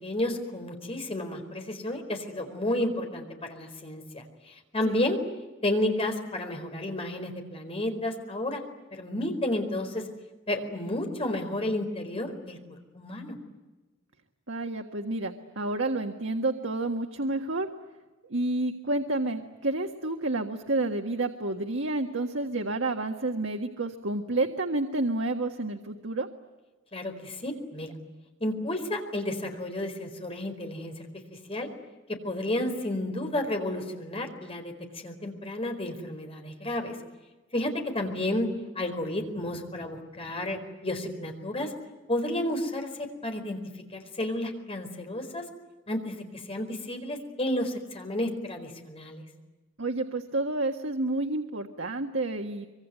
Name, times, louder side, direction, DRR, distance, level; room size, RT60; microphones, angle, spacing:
voice 1, 0.0-5.2 5.6-8.6 8.9-10.1 10.5-13.4 26.9-27.9 28.4-31.7 32.1-34.7 35.0-37.0 37.5-38.5 38.7-41.7 42.1-43.6 43.9-45.4 45.9-49.3, left 1 dB, 30° left, 4 dB, 4.6 m, -31 dB
voice 2, 14.5-17.7 18.3-26.3 49.8-52.7, right 2 dB, 85° right, 3 dB, 1.7 m, -30 dB
25.0 x 24.5 x 9.5 m, 1.2 s
head